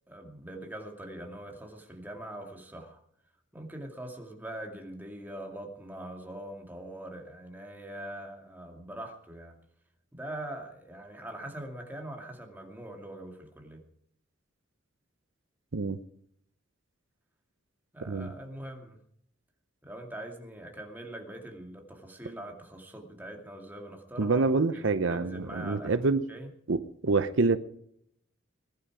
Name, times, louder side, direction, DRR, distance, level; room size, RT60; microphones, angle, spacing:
voice 1, 0.1-3.0 3.5-9.6 10.1-13.8 17.9-19.0 19.8-24.5 24.7-26.5, right 1 dB, 10° right, 2 dB, 2.4 m, -43 dB
voice 2, 24.2-26.2 26.7-27.6, right 3 dB, 70° right, 12 dB, 0.7 m, -26 dB
20.5 x 11.5 x 4.9 m, 0.70 s
head